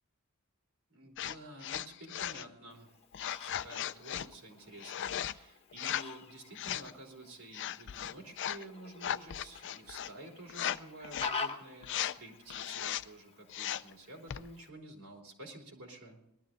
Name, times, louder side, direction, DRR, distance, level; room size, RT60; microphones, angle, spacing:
voice 1, 0.9-3.0 3.4-16.2, right 1 dB, 75° right, 1 dB, 3.5 m, -50 dB
sound 1, 1.2-1.4 1.6-2.5 3.1-4.3 4.8-5.3 5.7-6.1 6.5-6.9 7.5-8.6 9.0-10.1 10.5-10.8 11.0-11.4 11.8-12.2 12.5-13.1 13.5-13.9 14.3-14.5, left 10 dB, 55° left, 0.4 m, -37 dB
Fowl, 2.7-14.7, left 4 dB, 25° left, 1.2 m, -47 dB
19.5 x 12.5 x 3.8 m, 0.81 s
head